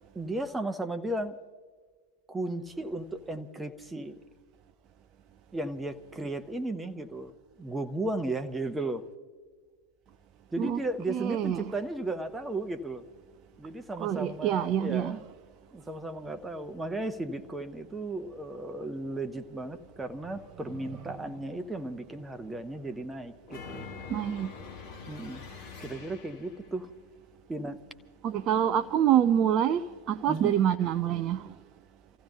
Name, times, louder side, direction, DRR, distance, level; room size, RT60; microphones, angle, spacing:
voice 1, 0.1-1.4 2.3-4.2 5.5-7.3 7.6-9.0 10.5-13.0 13.6-15.2 15.7-23.9 25.1-25.4 25.8-26.9 27.5-27.8 30.3-30.5, right 2 dB, 10° right, 0.9 m, -35 dB
voice 2, 11.1-11.7 14.0-15.2 24.1-24.5 28.2-31.5, right 10 dB, 35° right, 0.4 m, -26 dB
sound 1, 23.5-26.7, left 5 dB, 50° left, 2.7 m, -44 dB
30.0 x 15.0 x 2.8 m
figure-of-eight pair, 90°, 0 cm